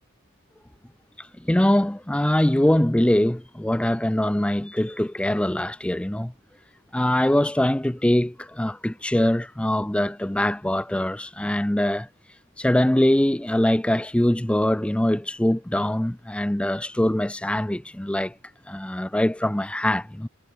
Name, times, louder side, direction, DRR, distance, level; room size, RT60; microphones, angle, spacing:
voice 1, 1.2-6.3 6.9-12.1 12.6-18.3 18.7-20.3, left 1 dB, 5° left, 0.4 m, -23 dB
head